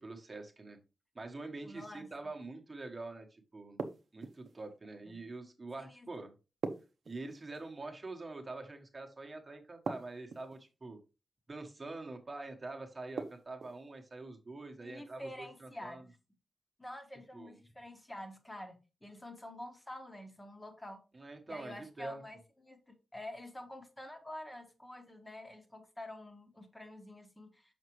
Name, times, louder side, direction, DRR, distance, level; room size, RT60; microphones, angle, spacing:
voice 1, 0.0-0.8 1.1-3.8 4.1-6.3 7.0-11.0 11.5-16.0 17.3-17.5 21.1-22.2, right 3 dB, 25° right, 1.2 m, -45 dB
voice 2, 1.6-2.3 5.1-5.2 5.8-6.1 14.8-16.1 16.8-21.0 21.5-27.7, left 1 dB, 10° left, 1.2 m, -48 dB
sound 1, 3.8-4.6 6.6-7.7 9.8-10.6 13.2-13.8, right 4 dB, 60° right, 0.7 m, -41 dB
6.4 x 6.0 x 3.1 m
wide cardioid pair, 155°, 0 cm